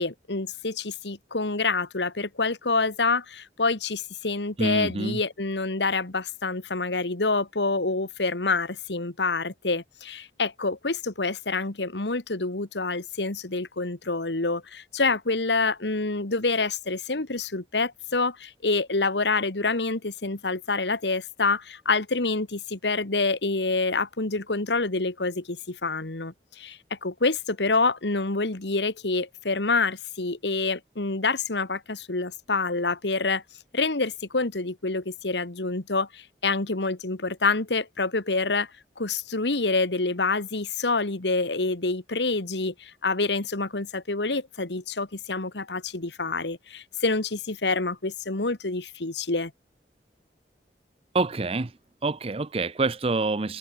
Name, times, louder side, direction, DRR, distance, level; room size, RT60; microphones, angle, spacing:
voice 1, 0.0-33.4 33.7-38.7 39.0-49.5, left 3 dB, 80° left, 1.9 m, -27 dB
voice 2, 4.6-5.2 51.1-51.7 52.0-53.6, right 3 dB, 35° right, 0.6 m, -26 dB
head